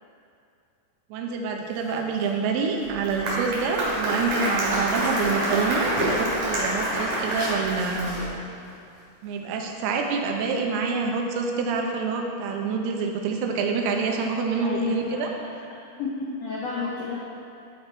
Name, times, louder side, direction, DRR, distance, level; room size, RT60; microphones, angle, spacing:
voice 1, 1.1-8.2 9.2-15.3, right 4 dB, 90° right, 2 dB, 2.8 m, -27 dB
sound 1, 1.6-10.2, right 1 dB, 15° right, 0.8 m, -38 dB
Applause, 2.8-8.3, right 1 dB, 60° right, 3.0 m, -27 dB
voice 2, 14.6-15.5 16.0-17.2, left 4 dB, 85° left, -6 dB, 1.5 m, -31 dB
11.0 x 5.1 x 4.4 m, 2.5 s
omnidirectional pair, 4.5 m